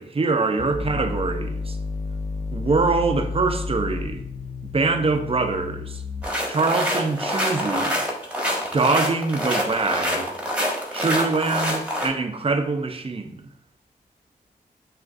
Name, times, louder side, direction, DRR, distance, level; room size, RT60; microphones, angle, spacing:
voice 1, 0.0-1.8 2.5-4.2 4.7-6.0 6.5-8.0 8.7-10.3 10.9-13.4, right 3 dB, 30° right, 0.6 m, -24 dB
sound 1, 0.6-6.6, left 4 dB, 35° left, 0.6 m, -31 dB
sound 2, 6.2-12.1, equal, 5° right, 1.2 m, -26 dB
6.1 x 2.5 x 2.4 m
supercardioid pair, 40°, 18 cm